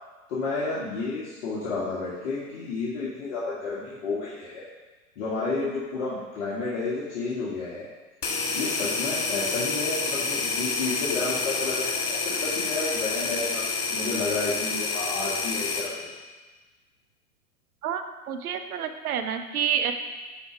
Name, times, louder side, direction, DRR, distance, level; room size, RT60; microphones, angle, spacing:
voice 1, 0.3-4.6 5.2-7.9 8.5-16.0, left 3 dB, 55° left, -7 dB, 2.1 m, -31 dB
sound 1, 8.2-15.9, left 4 dB, 85° left, 1.8 m, -28 dB
voice 2, 17.8-19.9, right 8 dB, 75° right, 8 dB, 0.9 m, -28 dB
10.5 x 4.3 x 4.7 m, 1.3 s
hypercardioid pair, 120°, 44 cm